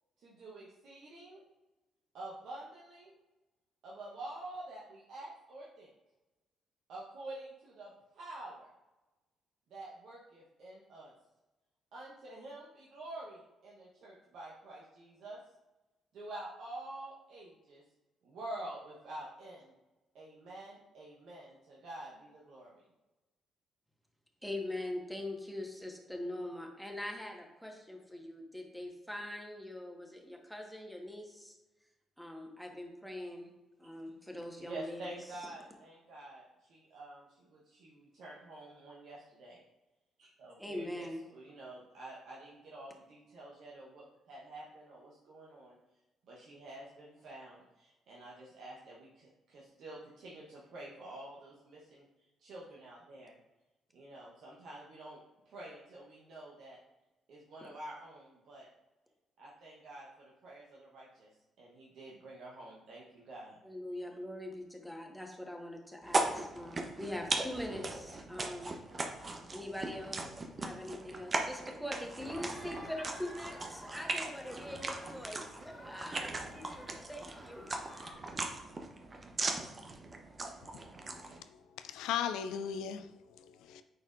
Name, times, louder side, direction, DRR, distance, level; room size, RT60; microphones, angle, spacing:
voice 1, 0.2-1.4 2.1-3.2 3.8-5.9 6.9-8.7 9.7-11.1 11.9-15.4 16.1-17.8 18.2-19.7 20.1-22.8 34.6-39.6 40.2-45.8 46.3-52.0 52.4-53.4 53.9-56.8 57.3-58.7 59.4-63.6, right 1 dB, 65° right, 1.0 m, -48 dB
voice 2, 24.4-31.6 32.2-33.5 33.8-35.2 40.6-41.2 63.6-68.7 69.5-70.3 70.6-77.6, left 1 dB, ahead, 1.4 m, -43 dB
sound 1, 66.0-81.4, right 2 dB, 35° right, 0.9 m, -39 dB
sound 2, 71.9-78.1, equal, 20° left, 2.0 m, -52 dB
voice 3, 81.5-83.8, left 8 dB, 70° left, 0.3 m, -38 dB
9.2 x 4.2 x 2.5 m
hypercardioid pair, 45°, 0 cm